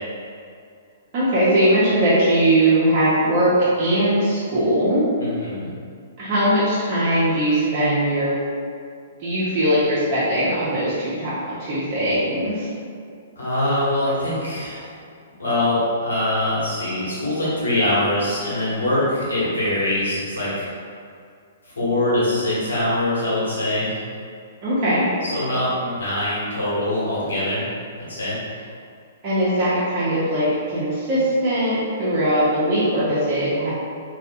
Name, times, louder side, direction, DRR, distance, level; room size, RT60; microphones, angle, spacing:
voice 1, 1.1-5.0 6.2-8.3 9.2-11.3 11.6-12.7 24.6-25.1 29.2-33.7, right 1 dB, 40° right, -11 dB, 0.7 m, -20 dB
voice 2, 5.2-5.7 13.4-14.9 15.4-20.7 21.8-24.0 25.2-27.7 28.0-28.4, left 1 dB, 85° left, -9 dB, 1.1 m, -23 dB
2.5 x 2.4 x 2.3 m, 2.3 s
hypercardioid pair, 125°, 0 cm